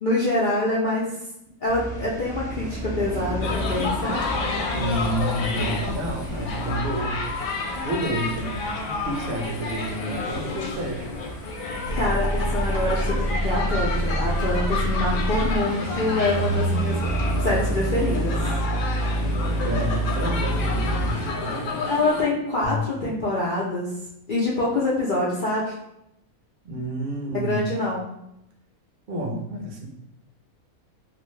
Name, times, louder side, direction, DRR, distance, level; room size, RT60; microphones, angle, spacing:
voice 1, 0.0-1.1 1.6-4.3 11.9-17.0 17.4-18.4 21.9-23.9 24.3-25.7 27.3-28.1, left 2 dB, 70° left, -6 dB, 0.4 m, -25 dB
sound 1, 1.7-21.3, right 1 dB, 5° left, 0.4 m, -33 dB
sound 2, 3.4-22.3, left 3 dB, 85° left, 1.1 m, -31 dB
voice 2, 4.7-7.2 7.8-8.5 8.8-11.2 19.1-21.8 26.6-27.7 29.1-29.9, right 1 dB, 55° right, 1 dB, 0.7 m, -30 dB
sound 3, 11.8-15.7 17.0-21.2 22.6-22.8, right 1 dB, 25° right, 0.8 m, -26 dB
2.6 x 2.5 x 3.1 m, 0.80 s
omnidirectional pair, 1.5 m